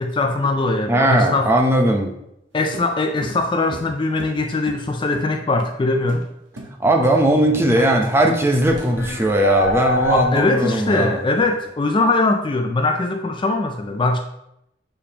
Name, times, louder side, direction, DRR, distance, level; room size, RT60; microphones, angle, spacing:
voice 1, 0.0-1.5 2.5-6.3 7.8-7.9 10.1-14.2, left 2 dB, 25° left, 5 dB, 0.4 m, -21 dB
voice 2, 0.9-2.1 6.8-11.2, right 1 dB, 15° right, 2 dB, 0.7 m, -18 dB
sound 1, 2.7-4.9 5.1-5.3 5.6-5.8 6.1-6.3 6.6-6.8 7.0-7.7 8.0-8.9, right 1 dB, 85° right, 1.1 m, -37 dB
sound 2, 8.6-10.9, left 1 dB, 75° left, 0.9 m, -23 dB
6.9 x 5.0 x 2.9 m, 0.81 s
head